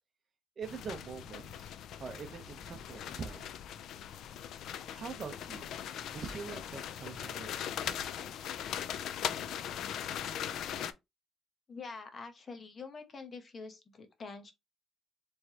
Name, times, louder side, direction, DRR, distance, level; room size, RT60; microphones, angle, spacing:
sound 1, 0.6-10.9, left 9 dB, 70° left, 0.4 m, -40 dB
voice 1, 0.6-1.7 2.0-3.5 4.6-5.7 6.1-8.1, right 5 dB, 40° right, 0.8 m, -44 dB
voice 2, 11.7-14.5, left 4 dB, 35° left, 0.9 m, -46 dB
4.5 x 3.3 x 2.9 m
cardioid pair, 130°, 0 cm